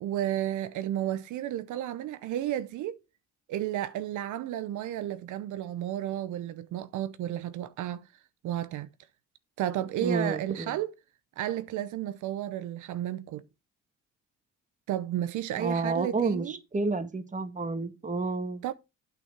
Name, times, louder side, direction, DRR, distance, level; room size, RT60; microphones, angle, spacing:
voice 1, 0.0-3.0 3.5-8.1 8.4-8.9 9.6-10.9 11.4-13.4 14.9-16.6 18.6-18.7, right 12 dB, 80° right, 0.7 m, -32 dB
voice 2, 10.0-10.8 15.6-18.6, right 3 dB, 25° right, 1.5 m, -30 dB
8.8 x 6.1 x 4.6 m
cardioid pair, 90°, 30 cm